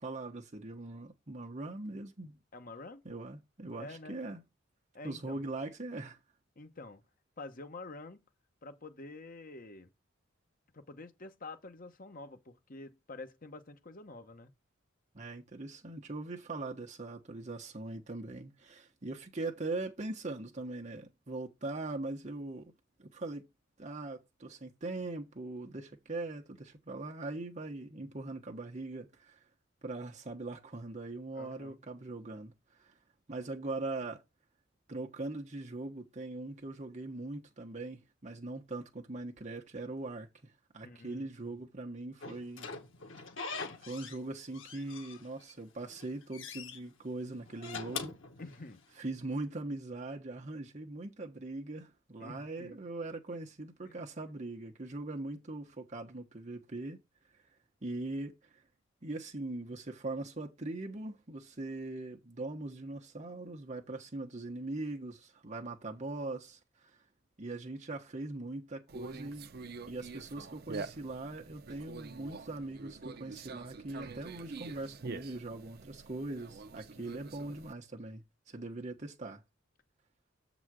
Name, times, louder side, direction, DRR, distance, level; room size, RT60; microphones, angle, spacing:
voice 1, 0.0-2.4 3.0-4.4 5.0-6.2 15.1-22.7 23.0-23.5 23.8-29.4 29.8-32.5 32.8-33.0 33.3-34.2 34.9-42.7 43.8-48.2 49.0-57.0 57.8-58.6 59.0-66.9 67.4-79.4, right 2 dB, 35° right, 1.2 m, -41 dB
voice 2, 2.5-3.0 3.8-4.2 4.9-5.4 6.6-7.0 7.4-8.2 8.6-9.9 10.7-14.5 28.0-28.1 31.3-31.8 40.8-41.6 48.4-48.8 52.2-52.8 53.9-54.0 77.0-77.2, left 2 dB, 45° left, 1.0 m, -48 dB
Slam / Squeak, 42.2-44.2 44.5-45.5 45.9-46.8 47.5-49.0, left 5 dB, 80° left, 1.4 m, -43 dB
Conversation, 68.9-77.7, right 4 dB, 55° right, 0.6 m, -46 dB
7.1 x 4.0 x 6.3 m
head